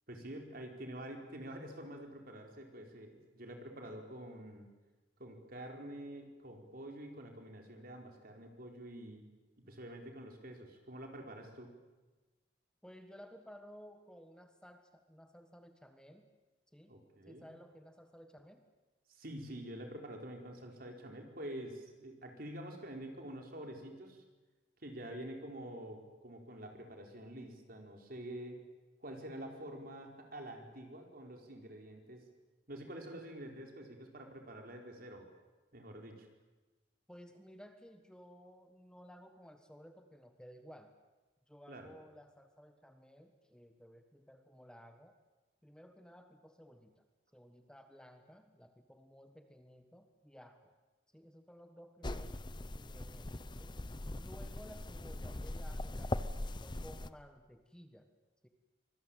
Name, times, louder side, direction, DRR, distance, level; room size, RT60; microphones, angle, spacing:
voice 1, 0.1-4.7 5.2-9.2 9.7-11.7 16.9-17.5 19.1-24.2 24.8-28.6 29.0-32.2 32.7-35.3 35.7-36.3 41.7-41.9, right 1 dB, 55° right, 3 dB, 4.6 m, -47 dB
voice 2, 12.8-16.3 16.7-16.9 17.2-18.6 37.1-40.9 41.5-45.2 45.6-47.0 47.3-50.7 51.1-52.4 52.7-53.8 54.2-58.1 58.4-58.5, equal, 5° left, 6 dB, 1.4 m, -56 dB
sound 1, 52.0-57.1, left 1 dB, 25° left, 0.8 m, -41 dB
25.0 x 21.0 x 9.1 m, 1.2 s
head